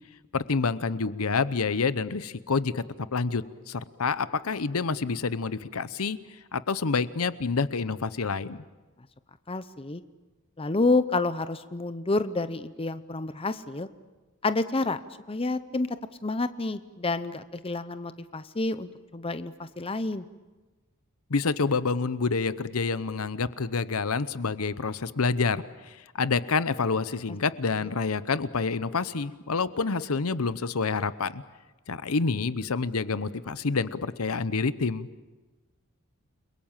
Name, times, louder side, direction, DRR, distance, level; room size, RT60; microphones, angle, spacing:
voice 1, 0.3-2.8 3.1-6.2 6.5-8.6 21.3-31.4 31.9-35.1, left 4 dB, 75° left, 15 dB, 0.8 m, -28 dB
voice 2, 9.5-10.0 10.6-13.9 14.4-15.0 15.3-15.9 16.2-20.2, left 3 dB, 25° left, 12 dB, 0.7 m, -29 dB
30.0 x 22.5 x 7.4 m, 1.2 s
head